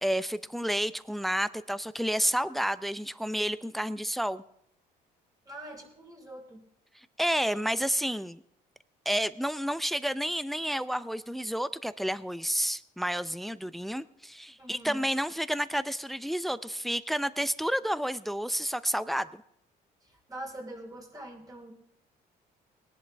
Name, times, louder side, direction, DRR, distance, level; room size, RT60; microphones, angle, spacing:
voice 1, 0.0-4.4 6.9-8.4 9.1-19.4, equal, ahead, 15 dB, 0.6 m, -30 dB
voice 2, 5.5-6.6 14.6-15.0 20.3-21.7, right 1 dB, 20° right, 1 dB, 4.2 m, -43 dB
20.0 x 11.0 x 3.4 m, 0.74 s
cardioid pair, 110°, 17 cm